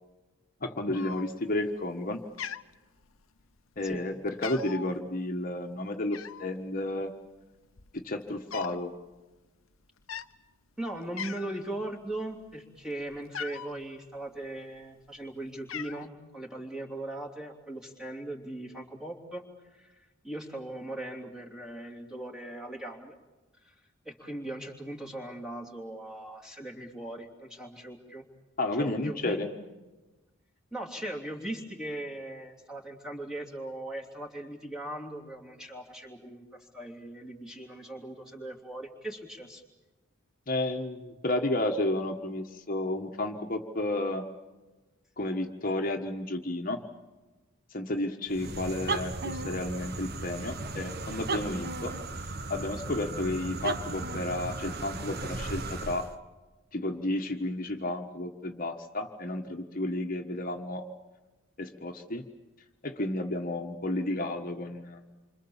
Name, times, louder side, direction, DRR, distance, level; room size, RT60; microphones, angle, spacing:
voice 1, 0.6-2.2 3.8-7.1 7.9-8.9 28.6-29.5 40.5-44.2 45.2-46.8 47.7-56.1 56.7-60.9 61.6-62.2 62.8-65.0, left 1 dB, 45° left, 3 dB, 1.5 m, -32 dB
Cat, 0.9-1.6 1.9-2.1 2.4-3.4 3.9-4.0 4.3-4.9 6.1-6.5 7.3-7.4 7.6-8.8 9.1-9.3 10.0-10.3 10.8-10.9 11.2-11.7 12.1-13.8 14.6-15.2 15.4-16.1, left 8 dB, 80° left, 1.0 m, -40 dB
voice 2, 10.8-19.4 19.7-23.1 23.6-23.8 24.0-28.2 28.7-29.4 30.7-39.6, right 1 dB, 5° right, -1 dB, 3.2 m, -39 dB
sound 1, 48.3-56.2, right 3 dB, 50° right, 1.3 m, -36 dB
28.0 x 26.0 x 7.3 m, 1.2 s
head